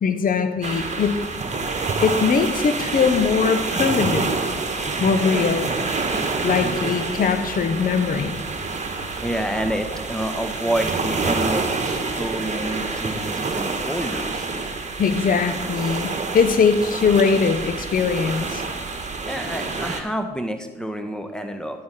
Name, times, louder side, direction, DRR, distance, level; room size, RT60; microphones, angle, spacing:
voice 1, 0.0-1.2 2.0-4.3 5.0-5.7 6.4-8.4 15.0-18.6, left 5 dB, 45° left, 9 dB, 0.9 m, -21 dB
sound 1, 0.6-20.0, right 3 dB, 35° right, 1.5 m, -27 dB
voice 2, 9.2-14.5 19.3-21.8, right 1 dB, 5° left, 6 dB, 1.4 m, -28 dB
9.5 x 9.4 x 4.3 m, 1.0 s
hypercardioid pair, 40°, 20 cm